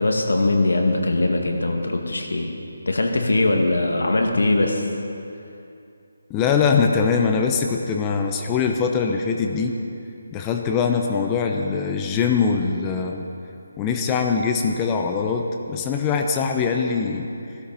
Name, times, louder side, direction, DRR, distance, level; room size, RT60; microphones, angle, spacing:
voice 1, 0.0-2.5 2.8-4.9, left 2 dB, 80° left, 2 dB, 2.1 m, -21 dB
voice 2, 6.3-9.8 10.3-13.2 13.8-17.3, left 5 dB, 15° left, 3 dB, 0.8 m, -22 dB
15.5 x 12.5 x 5.5 m, 2.7 s
figure-of-eight pair, 160°, 0 cm